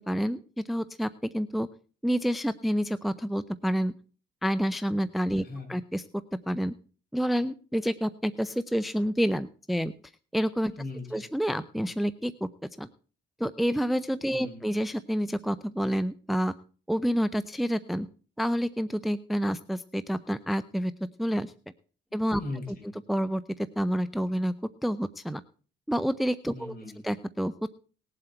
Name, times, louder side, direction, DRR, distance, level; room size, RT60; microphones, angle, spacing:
voice 1, 0.1-1.1 1.3-1.7 2.0-3.9 4.4-5.4 5.7-6.0 6.5-6.7 7.1-9.9 10.3-10.7 11.1-12.5 12.8-12.9 13.4-16.5 16.9-18.1 18.4-20.9 21.2-21.5 22.1-22.4 23.1-24.5 24.8-25.4 25.9-26.7 27.0-27.7, equal, ahead, 14 dB, 0.5 m, -28 dB
voice 2, 5.3-5.7 10.7-11.3 14.3-14.7 22.4-22.9 26.5-27.1, left 2 dB, 45° left, 1 dB, 7.1 m, -39 dB
19.5 x 7.7 x 4.5 m, 0.39 s
cardioid pair, 90°, 20 cm